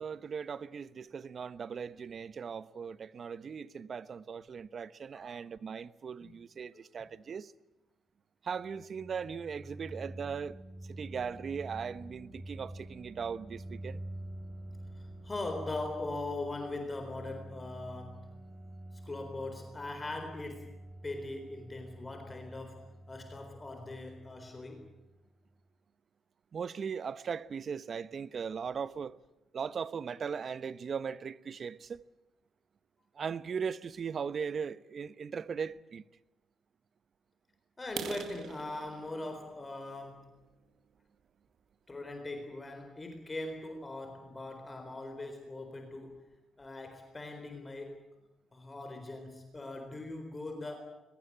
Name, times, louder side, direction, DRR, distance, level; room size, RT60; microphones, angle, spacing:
voice 1, 0.0-7.5 8.4-10.6 10.9-14.0 26.5-29.2 29.5-32.0 33.1-36.0, right 6 dB, 50° right, 0.9 m, -38 dB
sound 1, 8.6-25.3, right 1 dB, 10° right, 4.4 m, -47 dB
voice 2, 15.0-18.3 19.0-20.8 21.0-24.9 37.8-40.4 41.9-46.3 46.6-48.1 48.5-50.8, left 2 dB, 25° left, 4.1 m, -41 dB
sound 2, 37.8-41.6 42.1-42.3 42.8-42.9 43.3-43.5 43.8-43.9 44.3-44.4 44.7-45.2, right 8 dB, 65° right, 1.5 m, -46 dB
23.0 x 20.5 x 8.7 m
cardioid pair, 90°, 0 cm